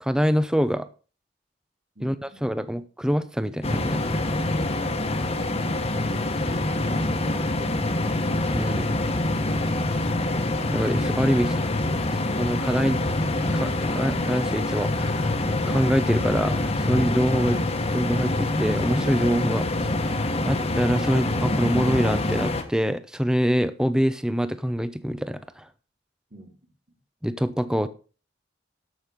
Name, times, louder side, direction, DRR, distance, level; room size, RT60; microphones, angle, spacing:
voice 1, 0.0-0.9 2.0-4.0 8.5-9.0 10.7-11.6 12.4-13.0 13.5-15.3 15.7-17.6 17.9-19.7 20.4-25.6 27.2-27.9, equal, 5° right, 12 dB, 0.7 m, -25 dB
voice 2, 2.0-2.7 7.1-8.2 26.3-26.5, right 1 dB, 50° right, -1 dB, 2.4 m, -46 dB
sound 1, 3.6-22.6, left 2 dB, 35° left, 1.3 m, -25 dB
13.0 x 6.2 x 5.1 m, 0.37 s
head